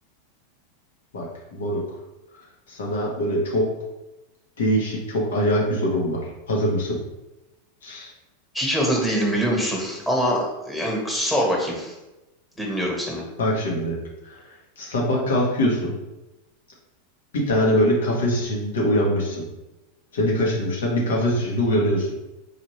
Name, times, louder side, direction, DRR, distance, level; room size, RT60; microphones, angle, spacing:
voice 1, 1.1-1.8 2.7-3.7 4.6-6.2 6.5-7.0 7.8-8.1 13.4-14.0 14.2-14.4 14.8-15.9 17.3-19.4 20.1-22.1, equal, 90° left, -3 dB, 1.3 m, -23 dB
voice 2, 8.5-11.9 12.6-13.2, equal, 5° left, -3 dB, 1.3 m, -24 dB
4.7 x 2.6 x 3.1 m, 1.0 s
supercardioid pair, 125°, 0 cm